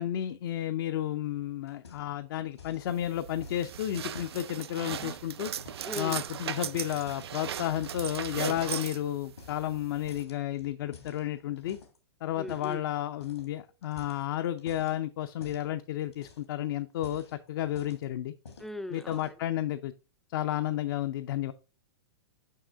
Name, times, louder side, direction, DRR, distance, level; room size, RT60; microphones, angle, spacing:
voice 1, 0.0-5.5 5.9-11.8 12.2-18.3 18.9-19.9 20.3-21.5, left 12 dB, 60° left, 0.5 m, -32 dB
sound 1, 1.7-2.3 2.5-2.9 3.4-6.0 6.4-7.4 7.7-8.9 9.4-9.8 10.1-12.0 12.5-12.8 13.2-13.5 13.8-15.0 15.4-15.7 16.1-16.6 16.9-18.1 18.5-18.7 19.0-19.5, left 5 dB, 90° left, 1.9 m, -51 dB
sound 2, 2.9-10.2, right 9 dB, 80° right, 0.4 m, -38 dB
voice 2, 5.9-6.2 12.4-12.8 18.6-19.3, left 1 dB, ahead, 0.4 m, -38 dB
6.5 x 5.9 x 3.4 m
hypercardioid pair, 125°, 13 cm